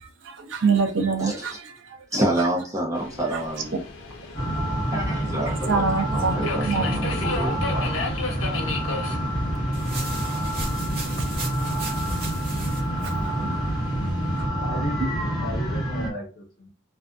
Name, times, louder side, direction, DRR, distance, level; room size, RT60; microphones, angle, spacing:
voice 1, 0.3-1.7 5.7-7.0 13.0-13.1 13.4-13.5, right 5 dB, 75° right, 0.5 m, -25 dB
voice 2, 2.1-3.8 4.5-4.6 4.9-8.1, right 1 dB, 15° right, 0.7 m, -28 dB
Subway metro underground, 2.9-14.5, left 3 dB, 75° left, 0.6 m, -36 dB
sound 1, 4.3-16.1, right 1 dB, 20° left, 0.8 m, -27 dB
sound 2, 9.7-12.8, right 2 dB, 50° right, 1.0 m, -36 dB
voice 3, 14.6-16.7, left 1 dB, 50° left, 1.0 m, -36 dB
2.5 x 2.4 x 2.2 m
head